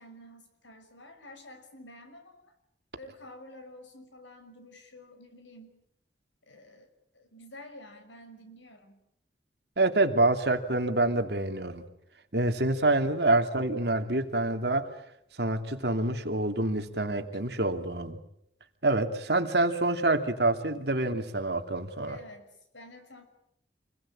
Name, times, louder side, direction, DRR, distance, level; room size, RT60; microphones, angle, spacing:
voice 1, 0.0-2.4 2.9-5.7 6.5-6.9 7.1-9.0 22.1-23.2, left 1 dB, 90° left, 7 dB, 5.9 m, -50 dB
voice 2, 9.8-11.8 12.3-14.9 15.4-18.2 18.8-22.2, right 2 dB, 60° right, 6 dB, 2.8 m, -27 dB
28.0 x 21.5 x 8.8 m, 0.76 s
head